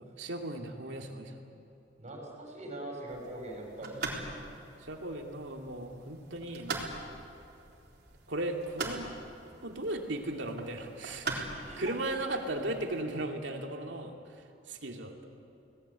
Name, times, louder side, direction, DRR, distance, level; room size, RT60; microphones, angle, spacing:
voice 1, 0.0-1.4 3.8-3.9 4.8-6.9 8.3-9.1 9.6-11.5 11.8-14.1 14.7-15.1, right 1 dB, 80° right, 2 dB, 2.6 m, -36 dB
voice 2, 2.0-4.0 11.5-12.2, right 1 dB, 40° right, 0 dB, 6.2 m, -42 dB
sound 1, 3.1-13.0, right 3 dB, 60° right, 4.0 m, -42 dB
26.5 x 19.0 x 8.4 m, 2.7 s
head